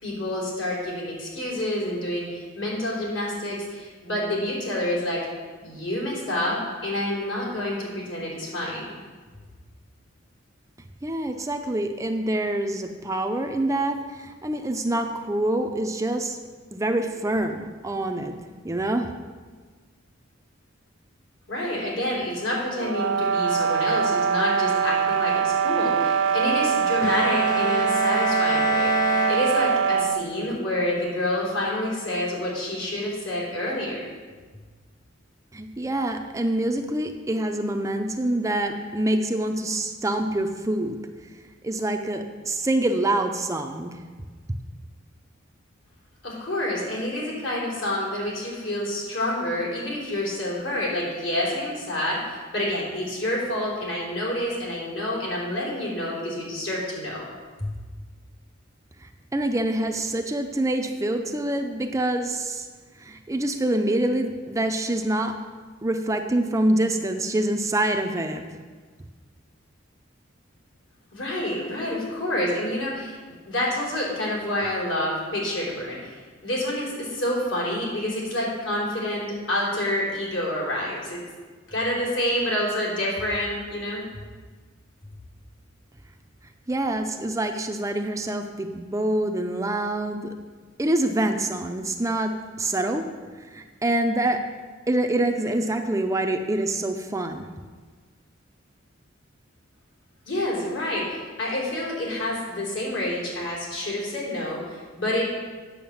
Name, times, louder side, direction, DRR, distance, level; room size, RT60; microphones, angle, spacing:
voice 1, 0.0-5.2 5.6-9.0 21.5-34.0 46.2-57.3 57.6-57.7 71.1-73.2 73.5-81.2 81.7-84.0 100.3-105.2, left 1 dB, 70° left, -4 dB, 3.6 m, -28 dB
voice 2, 11.0-16.4 16.7-18.3 18.6-19.1 35.5-41.0 41.6-44.0 59.0-62.7 63.0-65.4 65.8-68.5 86.7-90.3 90.8-93.0 93.5-94.4 94.9-97.5, right 1 dB, 15° right, 5 dB, 0.5 m, -26 dB
sound 1, 22.8-30.3, right 7 dB, 70° right, 0.4 m, -23 dB
Bowed string instrument, 27.0-30.1, left 4 dB, 45° left, 0.4 m, -29 dB
8.6 x 6.6 x 7.2 m, 1.5 s
head